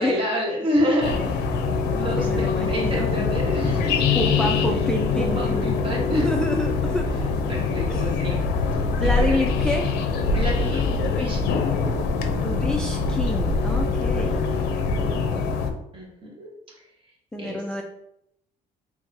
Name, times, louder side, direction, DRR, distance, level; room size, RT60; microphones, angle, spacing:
voice 1, 0.0-1.4 1.9-4.5 5.1-6.4 7.5-8.5 8.7-9.4 10.2-11.7 15.9-16.5 17.4-17.6, equal, 30° right, -3 dB, 1.4 m, -28 dB
sound 1, 1.0-15.7, left 4 dB, 80° left, 0.5 m, -24 dB
voice 2, 2.2-3.1 4.1-5.7 6.2-7.1 9.0-10.0 12.3-14.5 15.0-15.4 17.3-17.8, left 1 dB, 5° left, 1 dB, 0.3 m, -28 dB
3.7 x 3.0 x 2.6 m, 0.76 s
cardioid pair, 110°, 17 cm